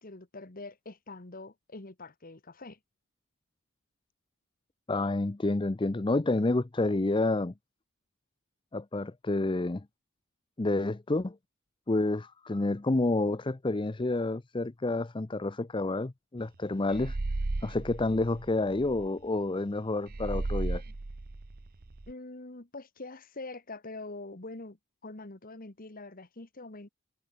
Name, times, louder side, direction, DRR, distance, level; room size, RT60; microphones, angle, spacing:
voice 1, 0.0-2.8 22.1-24.8 25.0-26.9, left 2 dB, 40° left, 1.5 m, -44 dB
voice 2, 4.9-7.5 8.7-9.8 10.6-11.4 11.9-17.2 17.6-20.8, left 2 dB, 20° left, 0.5 m, -29 dB
sound 1, 16.9-19.1 20.1-22.1, right 2 dB, 40° right, 0.8 m, -35 dB
head